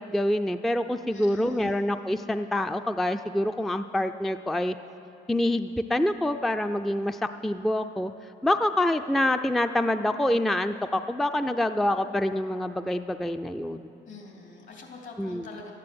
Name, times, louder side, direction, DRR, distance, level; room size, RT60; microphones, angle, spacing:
voice 1, 0.0-4.8 5.3-8.1 8.4-13.9 15.2-15.4, left 1 dB, ahead, 8 dB, 0.3 m, -26 dB
voice 2, 1.1-1.7 14.0-15.7, left 4 dB, 70° left, 0 dB, 3.1 m, -44 dB
12.5 x 9.8 x 7.7 m, 2.8 s
cardioid pair, 90°, 20 cm